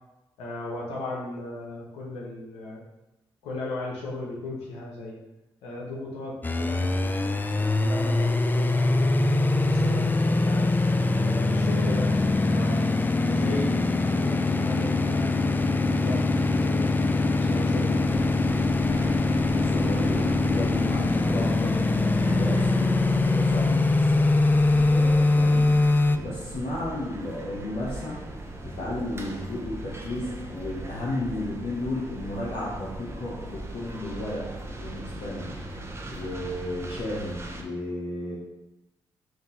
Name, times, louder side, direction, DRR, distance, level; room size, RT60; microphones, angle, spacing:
voice 1, 0.4-2.8 3.4-5.2 5.6-10.7 11.2-12.8 13.3-15.4 15.7-18.2, left 2 dB, 85° left, -4 dB, 0.7 m, -37 dB
sound 1, 6.4-26.2, left 2 dB, 20° left, 0.3 m, -23 dB
sound 2, 18.0-37.6, right 1 dB, 25° right, 0.8 m, -39 dB
voice 2, 19.5-24.3 24.7-25.8 26.1-28.2 28.6-34.5 34.8-35.6 36.1-38.4, left 1 dB, 65° left, -7 dB, 1.0 m, -33 dB
3.8 x 2.6 x 3.9 m, 0.96 s
supercardioid pair, 50°, 10 cm